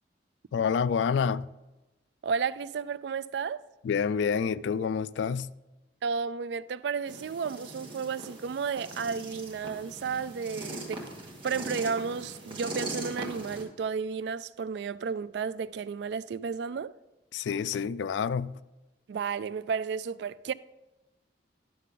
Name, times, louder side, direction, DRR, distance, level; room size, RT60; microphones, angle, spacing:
voice 1, 0.5-1.5 3.8-5.5 17.3-18.6, left 6 dB, 75° left, 0.3 m, -28 dB
voice 2, 2.2-3.6 6.0-11.1 11.4-16.9 19.1-20.5, right 6 dB, 65° right, 0.3 m, -32 dB
sound 1, 7.1-13.6, right 1 dB, 30° right, 1.6 m, -40 dB
11.0 x 6.6 x 3.8 m
head